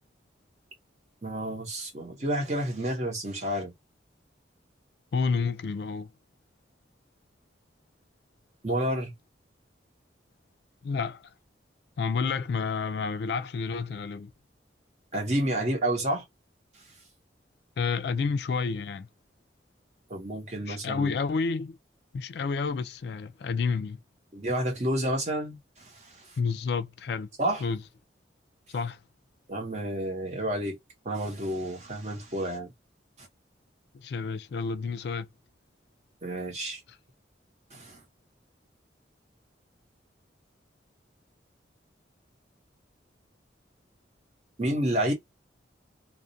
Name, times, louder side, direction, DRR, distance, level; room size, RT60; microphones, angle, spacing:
voice 1, 1.2-3.7 8.6-9.1 15.1-16.2 20.1-21.1 24.3-26.3 27.4-27.6 29.5-30.8 31.0-32.7 36.2-36.8 37.7-38.0 44.6-45.1, right 1 dB, 35° right, 0.8 m, -30 dB
voice 2, 5.1-6.1 10.8-11.3 12.0-14.3 17.8-19.1 20.7-21.8 22.1-24.0 26.4-27.3 27.6-27.8 28.7-29.0 33.9-35.3, left 5 dB, 60° left, 0.3 m, -30 dB
2.4 x 2.1 x 2.6 m
head